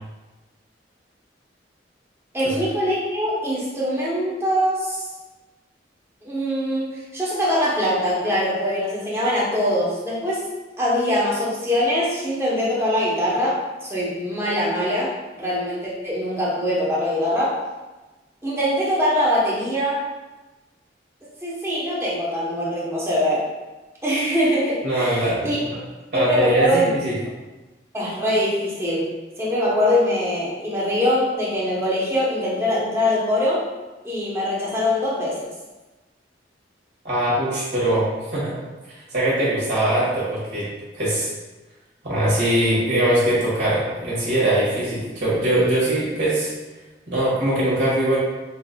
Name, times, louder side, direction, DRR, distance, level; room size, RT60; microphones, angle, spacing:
voice 1, 2.3-5.0 6.2-10.5 10.8-17.6 18.4-20.0 21.4-23.5 24.0-25.6 26.1-26.9 27.9-29.1 29.4-33.6 34.0-35.5, left 1 dB, 15° right, -6 dB, 0.9 m, -23 dB
voice 2, 24.8-25.8 26.1-27.1 37.0-38.5 39.1-41.3 42.0-46.5 47.1-48.2, right 1 dB, 65° right, -8 dB, 1.5 m, -22 dB
5.8 x 2.5 x 2.2 m, 1.2 s
head